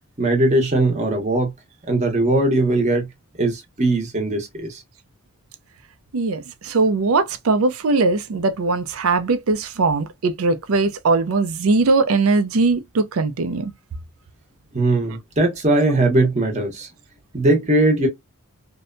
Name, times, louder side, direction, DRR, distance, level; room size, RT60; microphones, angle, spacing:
voice 1, 0.2-1.5 1.9-3.1 3.4-4.8 14.7-16.9 17.3-18.1, right 2 dB, 30° right, 0.8 m, -19 dB
voice 2, 6.1-13.7, right 3 dB, 75° right, 0.5 m, -20 dB
2.7 x 2.1 x 2.5 m
head